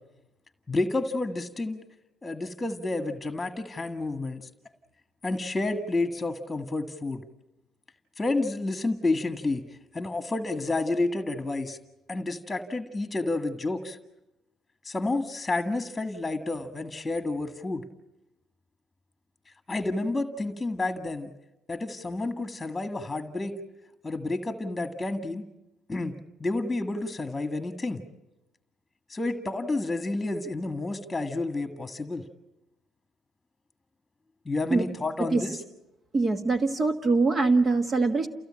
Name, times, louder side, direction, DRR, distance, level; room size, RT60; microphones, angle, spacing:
voice 1, 0.7-1.8 2.2-4.5 5.2-7.2 8.2-9.6 9.9-11.8 12.1-14.0 14.8-17.8 19.7-21.3 21.7-23.6 24.0-25.4 25.9-26.1 26.4-28.0 29.1-32.2 34.5-35.6, left 2 dB, 15° left, 7 dB, 1.7 m, -30 dB
voice 2, 36.1-38.3, right 3 dB, 35° right, 7 dB, 1.6 m, -23 dB
29.5 x 16.0 x 8.8 m, 0.96 s
cardioid pair, 85°, 0 cm